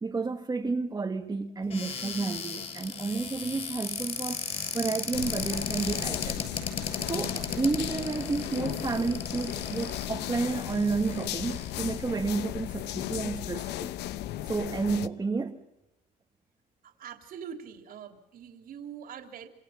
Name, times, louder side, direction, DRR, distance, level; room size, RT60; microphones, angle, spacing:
voice 1, 0.0-6.5 6.7-6.8 7.1-13.9 14.5-15.6, right 4 dB, 20° right, 1.7 m, -31 dB
Cupboard open or close, 1.7-12.1 12.7-12.8 13.1-13.4, left 5 dB, 40° left, 7.1 m, -36 dB
sound 1, 5.1-15.1, left 14 dB, 80° left, 0.9 m, -36 dB
voice 2, 16.8-19.5, right 8 dB, 60° right, 3.4 m, -43 dB
27.0 x 26.0 x 5.8 m
cardioid pair, 110°, 17 cm